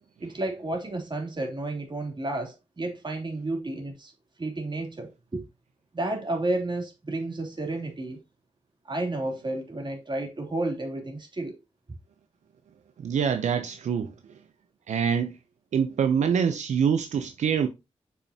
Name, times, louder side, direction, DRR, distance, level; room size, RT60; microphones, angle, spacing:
voice 1, 0.2-4.1 4.4-5.4 5.9-8.2 8.8-11.5, right 2 dB, 40° right, 3.2 m, -31 dB
voice 2, 13.0-14.1 14.9-15.4 15.7-17.7, right 7 dB, 80° right, 0.7 m, -25 dB
6.7 x 5.7 x 2.8 m
cardioid pair, 50°, 12 cm